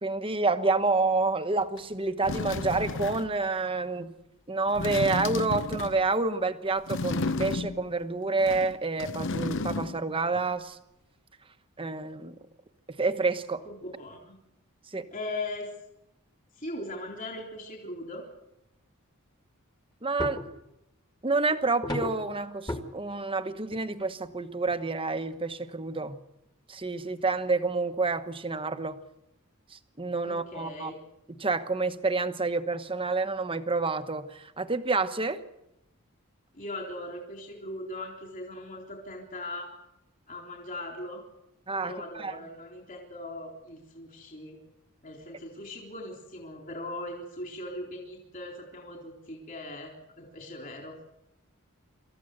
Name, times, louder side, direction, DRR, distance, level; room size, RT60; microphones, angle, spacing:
voice 1, 0.0-4.1 4.5-10.8 11.8-12.3 13.0-13.6 14.9-15.0 20.0-20.4 21.2-26.2 26.7-29.0 29.7-30.9 31.4-35.4 41.7-42.4, right 3 dB, 25° right, 9 dB, 1.1 m, -28 dB
sound 1, 1.8-1.9 2.2-3.4 4.7-6.1 6.9-8.0 8.4-10.1 10.3-10.4, left 3 dB, 55° left, 0.8 m, -33 dB
voice 2, 13.7-14.4 15.1-15.7 16.6-18.2 30.2-31.0 36.5-39.7 40.3-41.2 41.8-44.6 45.0-49.9 50.2-51.0, left 1 dB, 40° left, 1 dB, 3.9 m, -39 dB
sound 2, 20.2-20.6 21.8-22.3 22.7-22.8 23.7-23.8 24.2-24.4 24.6-24.7 25.3-25.4, left 1 dB, 20° left, 1.9 m, -33 dB
27.0 x 14.0 x 7.9 m, 0.88 s
head